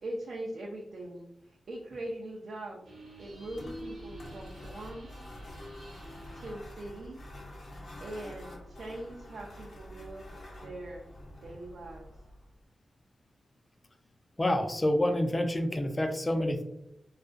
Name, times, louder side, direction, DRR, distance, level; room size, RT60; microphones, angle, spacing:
voice 1, 0.0-2.9 3.2-5.2 6.3-7.2 8.0-11.0 11.4-12.1, right 1 dB, 60° right, -2 dB, 0.4 m, -42 dB
sound 1, 2.8-6.6, equal, 85° right, 0.9 m, -48 dB
sound 2, 3.2-12.6, left 1 dB, 65° left, 0.7 m, -47 dB
voice 2, 14.4-16.6, left 1 dB, 25° left, 6 dB, 0.3 m, -28 dB
2.3 x 2.1 x 2.4 m, 0.81 s
wide cardioid pair, 90°, 0 cm